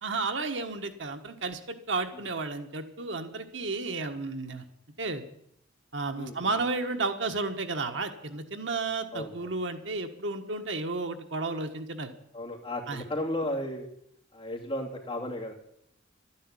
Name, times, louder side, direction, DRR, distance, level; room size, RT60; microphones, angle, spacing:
voice 1, 0.0-4.6 5.0-5.2 5.9-12.1 12.9-13.0, right 3 dB, 70° right, 6 dB, 1.5 m, -32 dB
voice 2, 6.2-6.6 9.1-9.6 12.3-13.8 14.3-15.5, left 1 dB, 30° left, -1 dB, 3.1 m, -34 dB
12.5 x 10.5 x 9.9 m, 0.74 s
head